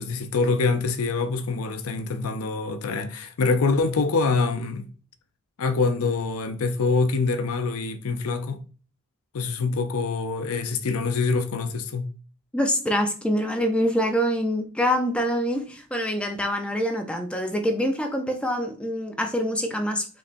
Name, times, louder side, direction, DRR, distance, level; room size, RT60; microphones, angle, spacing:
voice 1, 0.0-4.9 5.6-8.6 9.3-12.1, left 4 dB, 85° left, 0.5 m, -25 dB
voice 2, 12.5-20.0, equal, 5° left, 0.5 m, -25 dB
5.4 x 3.2 x 2.6 m
head